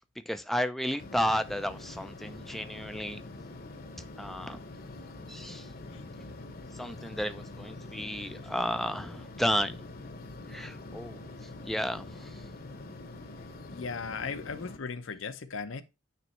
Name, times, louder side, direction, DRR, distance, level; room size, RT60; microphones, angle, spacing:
voice 1, 0.3-3.2 4.2-4.6 5.3-5.7 6.7-9.9 10.5-12.4, equal, ahead, 0.3 m, -33 dB
sound 1, 1.0-14.8, left 2 dB, 50° left, 0.8 m, -45 dB
voice 2, 13.7-15.8, left 5 dB, 85° left, 0.7 m, -37 dB
9.2 x 3.1 x 4.3 m
head